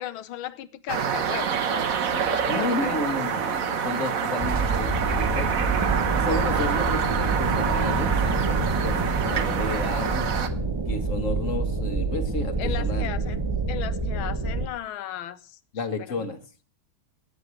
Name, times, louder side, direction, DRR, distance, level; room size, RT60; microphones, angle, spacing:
voice 1, 0.0-3.2 5.9-6.1 12.6-13.4 13.7-16.3, left 12 dB, 80° left, 16 dB, 1.6 m, -36 dB
sound 1, 0.9-10.5, right 7 dB, 50° right, 1.2 m, -27 dB
voice 2, 2.5-5.5 6.1-10.3 10.9-13.1 15.7-16.4, left 3 dB, 40° left, 8 dB, 1.6 m, -32 dB
sound 2, 4.4-14.7, right 3 dB, 35° right, 0.4 m, -27 dB
11.0 x 7.8 x 8.0 m, 0.40 s
omnidirectional pair, 2.2 m